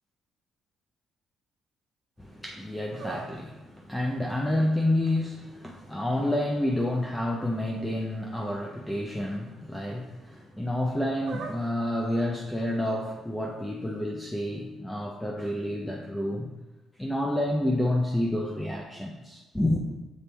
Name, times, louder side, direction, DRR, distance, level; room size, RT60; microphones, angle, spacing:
sound 1, 2.1-14.0, right 4 dB, 60° right, 1.2 m, -49 dB
voice 1, 2.2-16.5 17.0-19.8, left 1 dB, 10° left, -1 dB, 0.7 m, -29 dB
6.9 x 4.1 x 3.3 m, 1.0 s
cardioid pair, 90°, 0 cm